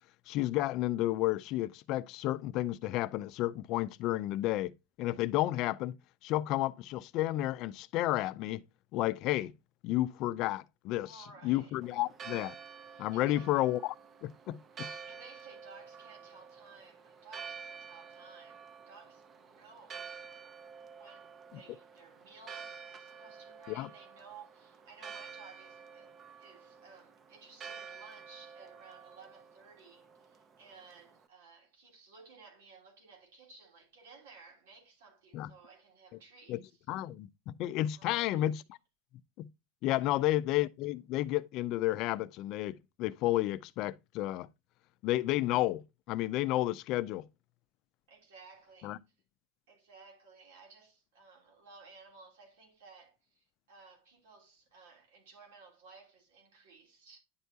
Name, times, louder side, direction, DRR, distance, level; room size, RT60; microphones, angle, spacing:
voice 1, 0.3-4.7 5.0-5.9 6.2-8.6 8.9-9.5 9.8-11.1 11.4-12.6 13.0-13.9 14.2-14.9 23.8-23.9 35.3-35.5 36.5-36.6 36.9-38.6 39.4-39.5 39.8-44.5 45.0-47.3 48.8-49.0, left 15 dB, 45° left, 0.5 m, -31 dB
voice 2, 11.0-11.8 12.9-13.5 14.7-20.1 21.0-36.8 38.0-38.4 40.0-40.2 48.1-49.0 49.7-57.2, right 4 dB, 85° right, 3.0 m, -56 dB
Church bell, 11.8-31.2, right 6 dB, 25° right, 0.6 m, -50 dB
10.5 x 4.6 x 2.8 m
supercardioid pair, 150°, 0 cm